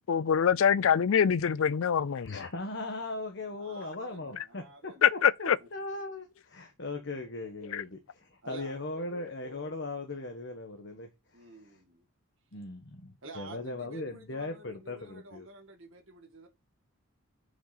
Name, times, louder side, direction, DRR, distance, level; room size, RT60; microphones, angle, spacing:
voice 1, 0.1-2.3 5.0-5.6 7.7-7.8, left 7 dB, 75° left, 0.4 m, -24 dB
voice 2, 2.1-11.5 12.5-15.5, left 2 dB, 55° left, 1.3 m, -39 dB
voice 3, 3.6-5.3 5.6-5.8 8.4-8.7 11.3-12.1 13.2-16.5, right 2 dB, 65° right, 1.9 m, -50 dB
7.8 x 5.3 x 4.0 m
head